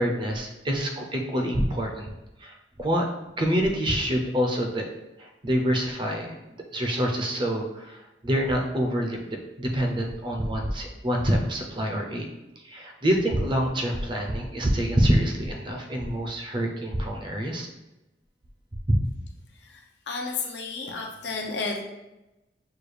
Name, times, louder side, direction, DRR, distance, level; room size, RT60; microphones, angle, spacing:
voice 1, 0.0-2.1 2.4-2.5 2.8-3.1 3.4-4.9 5.2-6.4 6.7-12.3 12.6-17.7 18.9-19.0, equal, 25° right, 1 dB, 0.5 m, -26 dB
voice 2, 19.5-21.8, left 4 dB, 65° left, 1 dB, 0.6 m, -32 dB
6.4 x 2.3 x 3.3 m, 1.0 s
head